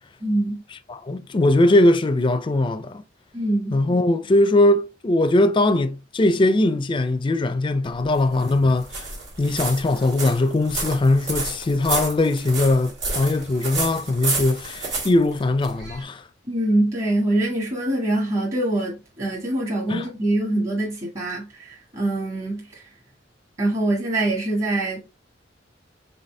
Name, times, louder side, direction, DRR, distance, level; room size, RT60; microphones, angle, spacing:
voice 1, 0.2-0.6 3.3-3.8 16.5-22.8 23.6-25.0, right 1 dB, 40° right, 1.5 m, -24 dB
voice 2, 0.9-3.0 3.7-9.1 9.4-16.2 19.9-20.1, left 2 dB, 25° left, 0.4 m, -20 dB
sound 1, 7.8-16.0, right 3 dB, 80° right, 2.0 m, -30 dB
4.1 x 3.9 x 3.3 m
head